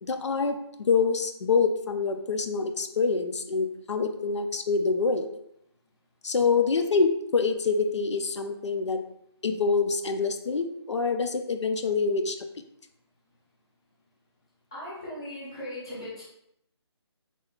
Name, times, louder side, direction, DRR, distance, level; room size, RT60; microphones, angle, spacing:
voice 1, 0.0-5.3 6.2-9.0 9.4-12.5, left 4 dB, 90° left, 7 dB, 0.5 m, -26 dB
voice 2, 14.7-16.2, left 1 dB, 10° left, -8 dB, 0.5 m, -38 dB
3.6 x 2.3 x 3.5 m, 0.78 s
hypercardioid pair, 175°, 15 cm